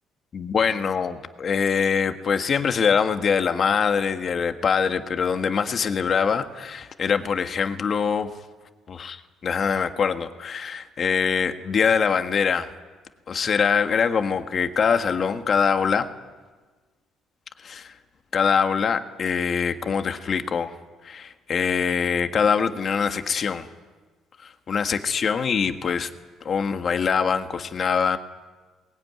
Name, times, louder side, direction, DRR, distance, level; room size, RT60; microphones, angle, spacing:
voice 1, 0.3-8.3 8.9-12.7 13.3-16.1 17.6-17.9 18.3-20.7 21.0-23.7 24.4-26.1 26.4-28.2, left 6 dB, 40° left, 8 dB, 1.6 m, -23 dB
22.5 x 20.5 x 9.6 m, 1.3 s
cardioid pair, 125°, 0 cm